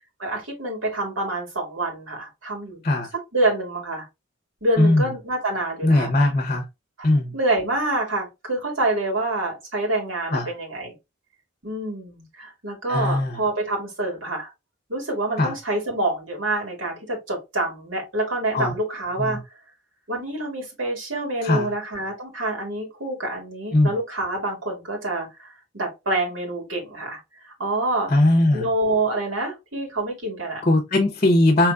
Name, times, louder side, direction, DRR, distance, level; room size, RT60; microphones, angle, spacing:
voice 1, 0.2-2.8 3.3-4.1 4.6-6.1 7.3-10.9 11.6-14.5 14.9-19.4 20.1-25.5 25.7-27.2 27.6-28.1 28.5-30.6, right 2 dB, 80° right, 2.0 m, -26 dB
voice 2, 5.8-6.6 7.0-7.3 10.3-10.5 12.9-13.4 15.4-15.5 18.5-18.7 19.2-19.4 21.4-21.7 23.7-23.9 28.1-28.7 30.6-31.7, left 1 dB, 35° left, 0.7 m, -19 dB
4.9 x 3.1 x 2.3 m
head